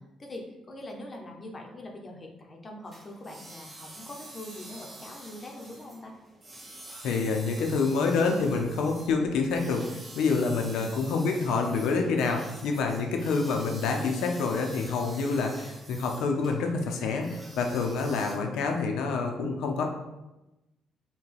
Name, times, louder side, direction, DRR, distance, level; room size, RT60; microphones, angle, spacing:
voice 1, 0.2-6.1, left 1 dB, 35° left, 1 dB, 0.7 m, -43 dB
sound 1, 2.8-18.3, right 1 dB, 25° right, 1.3 m, -47 dB
voice 2, 7.0-19.8, left 4 dB, 85° left, 3 dB, 0.6 m, -27 dB
5.7 x 2.2 x 3.3 m, 1.0 s
cardioid pair, 90°, 0 cm